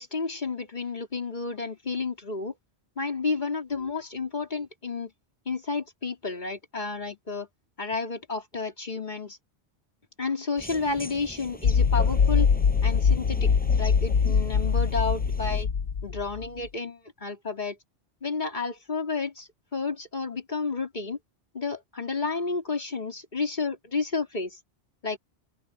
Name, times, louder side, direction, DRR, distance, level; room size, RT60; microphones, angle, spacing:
voice 1, 0.0-2.5 3.0-5.1 5.4-7.5 7.8-9.4 10.2-12.5 12.8-15.7 16.0-17.8 18.2-21.2 21.5-24.6 25.0-25.2, left 4 dB, 45° left, 3.2 m, -31 dB
sound 1, 10.6-15.6, equal, 10° left, 6.6 m, -42 dB
sound 2, 11.6-16.5, left 6 dB, 80° left, 1.2 m, -23 dB
open air
omnidirectional pair, 1.1 m